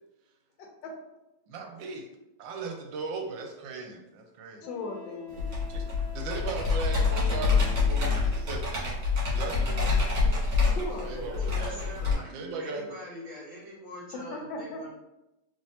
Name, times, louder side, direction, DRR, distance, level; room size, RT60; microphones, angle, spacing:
voice 1, 0.6-0.9 4.6-5.5 10.7-11.1 14.1-14.8, left 2 dB, 80° left, 2 dB, 1.3 m, -37 dB
voice 2, 1.5-2.1 2.4-4.7 5.7-5.8 6.1-12.8, right 4 dB, 85° right, 3 dB, 1.3 m, -38 dB
Wind instrument woodwind instrument, 4.6-8.7, left 4 dB, 50° left, 1.4 m, -46 dB
Computer keyboard, 5.4-12.1, left 4 dB, 65° right, 1.9 m, -26 dB
voice 3, 11.1-14.9, left 1 dB, 25° right, -8 dB, 1.3 m, -43 dB
3.5 x 3.0 x 2.7 m, 0.94 s
omnidirectional pair, 2.0 m